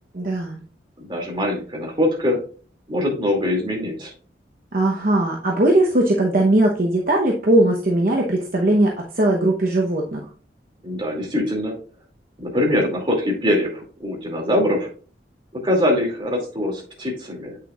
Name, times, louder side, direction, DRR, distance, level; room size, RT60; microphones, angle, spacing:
voice 1, 0.1-0.6 4.7-10.3, right 1 dB, 50° right, 0 dB, 0.9 m, -19 dB
voice 2, 1.0-2.4 2.9-4.1 10.8-11.7 12.4-14.9 15.6-17.6, left 1 dB, 30° right, -1 dB, 2.3 m, -23 dB
8.1 x 6.5 x 2.4 m, 0.38 s
head